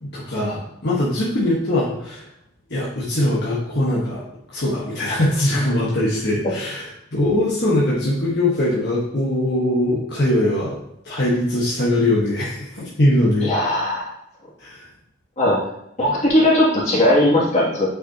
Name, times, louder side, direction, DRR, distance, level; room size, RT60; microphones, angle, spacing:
voice 1, 0.0-2.3 2.7-4.2 4.5-10.8 11.0-13.5 14.6-14.9, left 1 dB, 55° left, -6 dB, 1.4 m, -21 dB
voice 2, 13.4-14.1 15.4-15.6 16.0-17.9, left 1 dB, 35° left, -5 dB, 2.4 m, -18 dB
8.3 x 6.4 x 2.9 m, 0.79 s
head